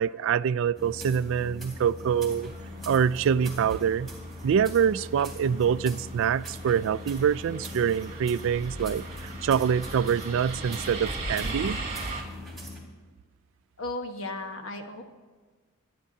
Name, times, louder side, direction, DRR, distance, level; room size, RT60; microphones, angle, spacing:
voice 1, 0.0-2.5 2.9-4.1 4.4-11.8, right 7 dB, 65° right, 0.3 m, -25 dB
sound 1, 0.7-12.8, left 1 dB, ahead, 3.1 m, -41 dB
sound 2, 2.3-12.2, right 3 dB, 35° right, 1.9 m, -39 dB
voice 2, 13.8-15.0, left 2 dB, 65° left, 1.3 m, -35 dB
25.0 x 10.0 x 2.8 m
head